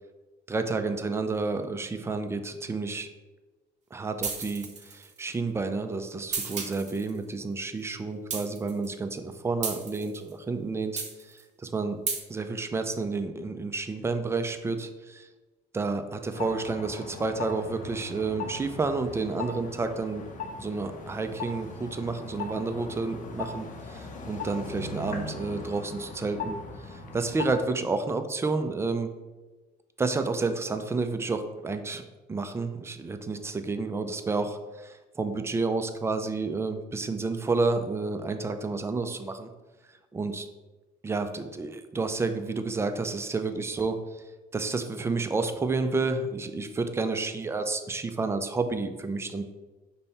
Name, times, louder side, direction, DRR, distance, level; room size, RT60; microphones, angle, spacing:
voice 1, 0.5-3.1 3.9-11.0 11.3-12.0 12.3-15.3 15.7-20.2 20.6-26.6 27.1-29.1 30.0-32.0 32.3-39.5 40.1-40.5 41.0-44.0 44.5-49.4, right 3 dB, 15° right, 8 dB, 0.3 m, -30 dB
sound 1, 4.2-5.2 6.3-7.1 8.3-8.9 9.6-10.3 11.0-11.4 12.1-12.2, right 5 dB, 45° right, 0.8 m, -33 dB
sound 2, 16.3-27.7, left 3 dB, 50° left, 0.6 m, -39 dB
5.4 x 2.2 x 4.1 m, 1.2 s
cardioid pair, 110°, 17 cm